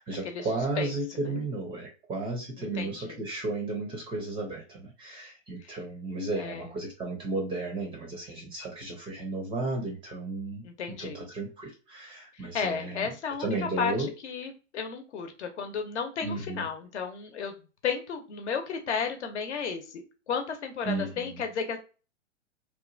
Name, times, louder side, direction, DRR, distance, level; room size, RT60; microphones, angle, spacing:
voice 1, 0.0-10.7 11.0-13.1 13.4-14.1 16.2-16.7 20.8-21.4, right 2 dB, 15° right, 1 dB, 0.5 m, -34 dB
voice 2, 2.8-3.2 6.4-6.6 10.6-11.2 12.5-13.9 14.2-17.5 17.8-21.8, left 6 dB, 65° left, 5 dB, 0.8 m, -33 dB
2.9 x 2.2 x 2.5 m, 0.33 s
figure-of-eight pair, 115°, 38 cm